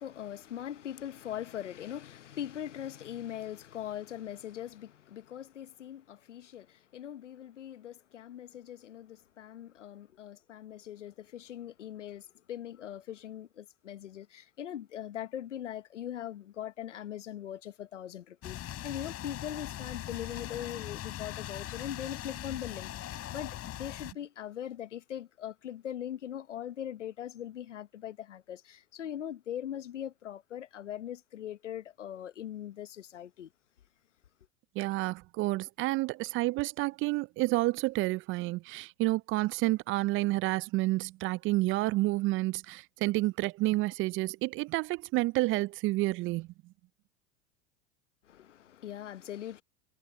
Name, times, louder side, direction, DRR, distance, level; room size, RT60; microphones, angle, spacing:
voice 1, 0.0-33.5 48.2-49.6, left 10 dB, 85° left, 1.1 m, -41 dB
sound 1, 18.4-24.1, left 13 dB, 40° left, 5.7 m, -40 dB
voice 2, 34.8-46.5, right 19 dB, 35° right, 0.4 m, -29 dB
hypercardioid pair, 90°, 35 cm